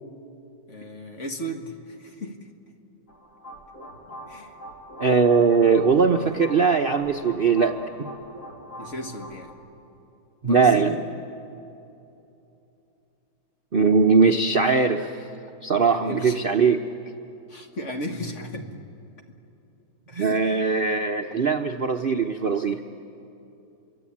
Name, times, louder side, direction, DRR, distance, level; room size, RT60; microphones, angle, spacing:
voice 1, 0.7-2.4 4.3-4.5 6.3-6.4 8.8-9.5 10.4-11.0 15.8-16.4 17.5-18.8 20.1-20.6, right 1 dB, 45° left, 4 dB, 2.0 m, -34 dB
sound 1, 3.1-9.5, equal, 60° left, 3.5 m, -43 dB
voice 2, 5.0-7.7 10.4-10.9 13.7-15.1 15.6-16.8 20.2-22.8, right 5 dB, 45° right, 4 dB, 0.7 m, -20 dB
27.5 x 23.5 x 8.6 m, 2.9 s
omnidirectional pair, 1.9 m